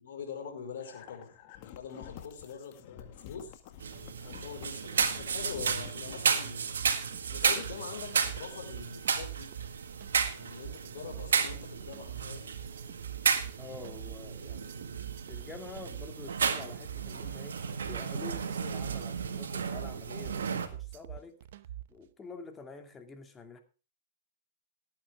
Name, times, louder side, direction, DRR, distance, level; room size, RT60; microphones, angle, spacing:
voice 1, 0.0-1.3 1.6-3.6 4.2-4.9 5.1-6.7 7.3-9.5 10.3-12.5, left 6 dB, 75° left, 3 dB, 5.0 m, -44 dB
sound 1, 0.8-6.3, left 11 dB, 50° left, 1.9 m, -49 dB
sound 2, 3.8-20.7, right 6 dB, 85° right, 1.8 m, -33 dB
sound 3, 6.8-22.0, right 12 dB, 65° right, 0.8 m, -44 dB
voice 2, 13.6-14.8 15.3-21.4 21.9-23.6, left 4 dB, 20° left, 6 dB, 2.4 m, -47 dB
18.5 x 8.9 x 3.6 m, 0.33 s
hypercardioid pair, 115°, 0 cm